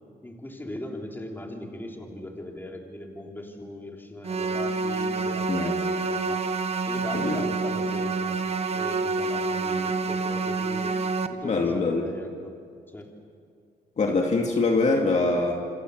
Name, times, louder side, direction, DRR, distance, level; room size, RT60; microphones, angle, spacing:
voice 1, 0.2-8.4 8.7-11.0 11.3-12.6 12.9-13.1, left 1 dB, 10° left, 1 dB, 3.6 m, -39 dB
sound 1, 4.2-11.3, right 4 dB, 35° right, 1.3 m, -27 dB
voice 2, 11.4-12.0 14.0-15.5, left 3 dB, 40° left, 1 dB, 2.3 m, -23 dB
27.5 x 26.0 x 6.6 m, 2.2 s
cardioid pair, 110°, 17 cm